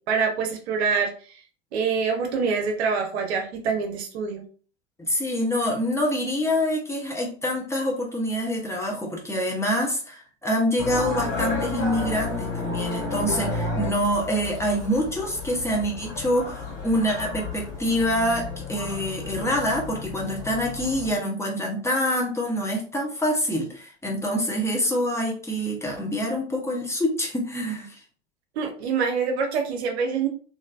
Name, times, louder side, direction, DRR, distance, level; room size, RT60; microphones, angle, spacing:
voice 1, 0.1-1.1 1.7-4.4 28.6-30.3, right 5 dB, 60° right, 3 dB, 0.8 m, -25 dB
voice 2, 5.0-27.9, equal, 5° left, -2 dB, 0.8 m, -26 dB
sound 1, 10.8-21.1, left 3 dB, 45° left, 1.5 m, -32 dB
3.1 x 2.6 x 2.5 m, 0.42 s
figure-of-eight pair, 85°, 37 cm